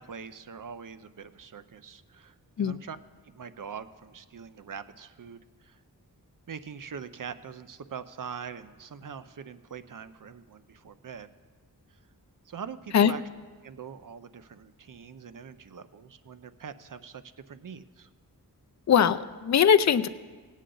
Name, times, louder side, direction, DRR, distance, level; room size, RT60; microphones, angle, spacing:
voice 1, 0.0-3.0 3.2-5.8 6.5-11.3 11.9-12.0 12.4-13.2 13.6-18.1, right 6 dB, 55° right, 12 dB, 0.6 m, -43 dB
voice 2, 18.9-20.1, left 8 dB, 50° left, 11 dB, 0.5 m, -21 dB
18.5 x 8.3 x 3.8 m, 1.5 s
wide cardioid pair, 85°, 37 cm